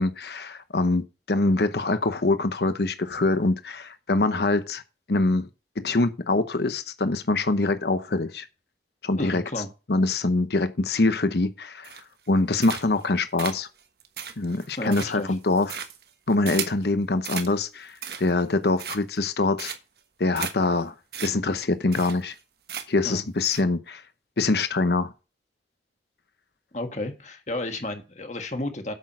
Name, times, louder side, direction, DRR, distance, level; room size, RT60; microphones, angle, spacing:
voice 1, 0.0-4.8 5.1-5.5 5.8-8.5 9.0-9.4 9.9-13.7 14.4-15.8 16.3-19.7 20.2-20.9 21.2-22.3 22.9-24.0 24.4-25.1, left 2 dB, 65° left, 0.8 m, -24 dB
voice 2, 9.2-9.7 14.8-15.3 23.0-23.2 26.7-28.9, left 1 dB, 40° left, 1.6 m, -32 dB
sound 1, 11.8-12.3 12.6-13.1 13.4-16.8 17.2-17.5 17.9-18.4 18.8-19.2 19.6-20.0 20.4-20.5 20.8-20.9 21.1-21.3 21.6-21.7 21.9-22.4 22.7-23.1 23.4-23.6, right 8 dB, 60° right, 1.3 m, -35 dB
8.3 x 6.3 x 6.1 m
head